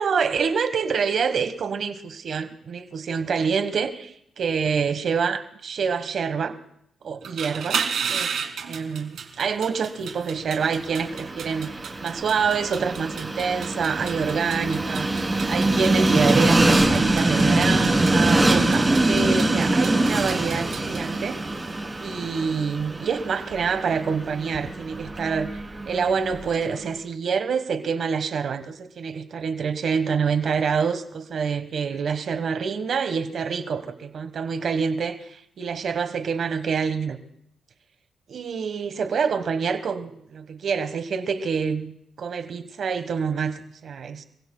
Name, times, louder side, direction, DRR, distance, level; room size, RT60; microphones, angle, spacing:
voice 1, 0.0-6.5 7.0-7.8 8.1-8.3 8.7-21.4 22.0-37.2 38.3-41.9 42.2-44.2, right 6 dB, 60° right, 10 dB, 1.3 m, -26 dB
sound 1, 7.1-21.0, right 7 dB, 75° right, 2.0 m, -34 dB
Train, 10.6-26.7, right 2 dB, 20° right, 3.3 m, -24 dB
30.0 x 16.0 x 2.3 m, 0.73 s
cardioid pair, 85°, 0 cm